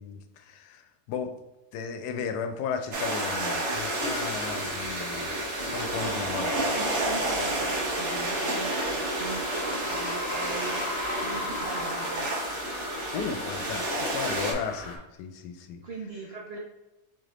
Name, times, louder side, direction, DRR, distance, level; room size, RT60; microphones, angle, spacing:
voice 1, 0.0-1.4 1.7-5.3 5.7-6.6 13.1-15.8, left 6 dB, 90° left, 7 dB, 1.1 m, -35 dB
sound 1, 2.9-14.5, right 1 dB, 55° right, 1.1 m, -30 dB
sound 2, 3.1-15.0, left 3 dB, 65° left, 1.2 m, -38 dB
voice 2, 5.9-12.3 15.8-16.6, right 4 dB, 75° right, 0 dB, 0.5 m, -40 dB
4.1 x 3.3 x 3.7 m, 0.99 s
omnidirectional pair, 1.6 m